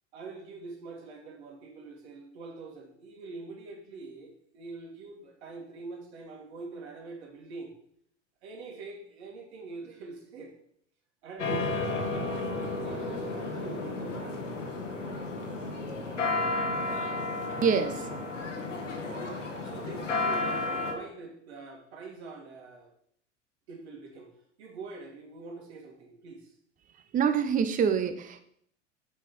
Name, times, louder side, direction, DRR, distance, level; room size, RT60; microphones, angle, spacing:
voice 1, 0.1-7.7 8.4-10.5 11.2-12.3 12.8-14.4 17.9-18.1 19.6-22.9 23.7-26.5, right 3 dB, 60° right, 1 dB, 2.3 m, -44 dB
sound 1, 11.4-20.9, left 2 dB, 75° left, 1.6 m, -32 dB
voice 2, 17.6-18.0 27.1-28.4, right 7 dB, 20° right, 10 dB, 0.8 m, -25 dB
7.4 x 6.0 x 5.3 m, 0.67 s
figure-of-eight pair, 75°, 37 cm